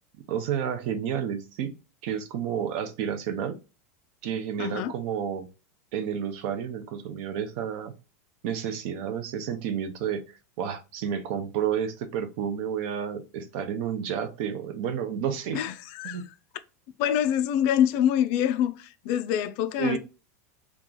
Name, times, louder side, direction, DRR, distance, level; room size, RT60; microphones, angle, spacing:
voice 1, 0.3-1.7 2.0-3.6 4.2-5.5 5.9-7.9 8.4-15.6 16.0-16.2 19.8-20.0, right 8 dB, 45° right, 0.6 m, -30 dB
voice 2, 4.6-4.9 15.5-16.2 17.0-20.0, left 10 dB, 40° left, 0.4 m, -25 dB
2.9 x 2.3 x 3.7 m
supercardioid pair, 175°, 8 cm